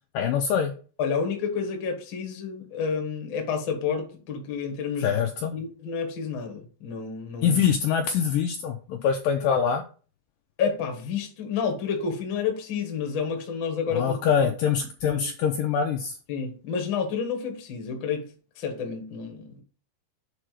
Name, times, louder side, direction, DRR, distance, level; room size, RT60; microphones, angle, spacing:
voice 1, 0.1-0.7 5.0-5.5 7.4-9.8 13.9-16.2, left 7 dB, 85° left, 1.9 m, -24 dB
voice 2, 1.0-5.3 5.5-7.6 10.6-14.5 15.0-15.3 16.3-18.3 18.6-19.6, left 6 dB, 60° left, 1.2 m, -30 dB
7.8 x 3.7 x 4.9 m
omnidirectional pair, 4.8 m